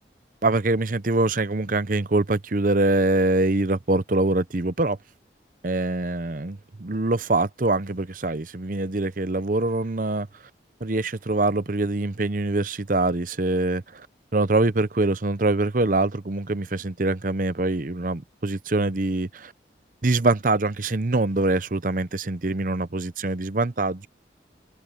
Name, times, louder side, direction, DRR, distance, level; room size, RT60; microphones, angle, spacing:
voice 1, 0.4-5.0 5.6-10.3 10.8-14.1 14.3-19.5 20.0-24.1, right 2 dB, 50° right, 0.8 m, -24 dB
head